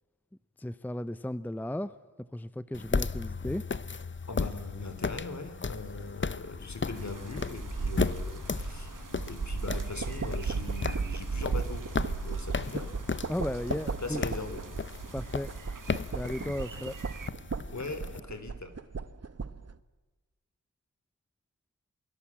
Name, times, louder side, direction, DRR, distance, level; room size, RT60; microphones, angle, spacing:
voice 1, 0.6-1.9 2.3-3.6 13.3-14.2 15.1-15.5 16.1-17.0, left 1 dB, 5° left, 15 dB, 0.7 m, -35 dB
sound 1, 2.7-18.2, left 4 dB, 35° left, 0.8 m, -35 dB
voice 2, 4.3-12.9 13.8-14.6 17.7-18.7, left 3 dB, 55° left, 9 dB, 3.2 m, -40 dB
sound 2, 6.9-17.3, right 5 dB, 70° right, 1.4 m, -38 dB
sound 3, 9.7-19.8, right 4 dB, 50° right, 1.1 m, -39 dB
28.0 x 22.5 x 7.4 m, 1.2 s
wide cardioid pair, 60°, 33 cm